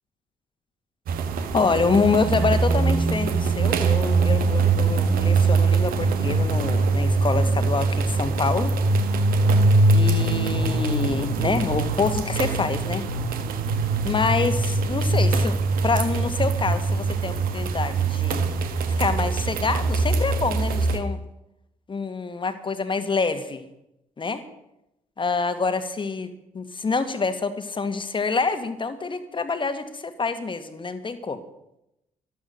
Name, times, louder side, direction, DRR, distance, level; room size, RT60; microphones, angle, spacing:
sound 1, 1.1-21.0, right 3 dB, 55° right, 1.6 m, -22 dB
voice 1, 1.5-8.7 9.9-13.1 14.0-15.6 15.8-18.5 19.0-21.2 21.9-23.6 24.2-24.4 25.2-26.3 26.5-31.4, left 4 dB, 30° left, 10 dB, 1.7 m, -26 dB
13.5 x 13.0 x 6.5 m, 0.85 s
figure-of-eight pair, 45°, 17 cm